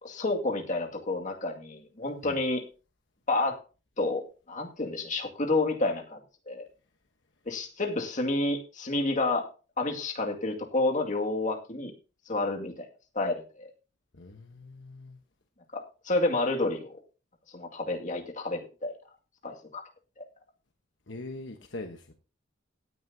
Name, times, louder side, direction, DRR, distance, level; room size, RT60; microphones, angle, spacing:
voice 1, 0.0-2.6 3.3-3.6 4.0-6.2 6.5-6.7 7.5-9.5 9.8-11.9 12.3-12.9 13.2-13.7 15.7-16.9 17.5-18.9 19.4-19.8, left 2 dB, 40° left, 2.2 m, -29 dB
voice 2, 14.1-15.2 21.1-22.1, left 2 dB, 60° left, 1.2 m, -42 dB
17.0 x 9.5 x 2.8 m
head